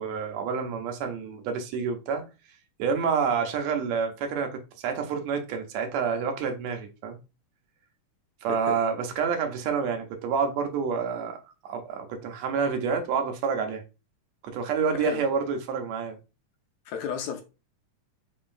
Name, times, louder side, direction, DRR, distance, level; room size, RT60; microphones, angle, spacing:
voice 1, 0.0-2.2 2.8-7.2 8.4-11.4 11.6-13.8 14.4-16.2, right 6 dB, 75° right, 1.6 m, -28 dB
voice 2, 16.8-17.4, left 7 dB, 80° left, 1.7 m, -32 dB
5.0 x 3.7 x 2.5 m
omnidirectional pair, 3.7 m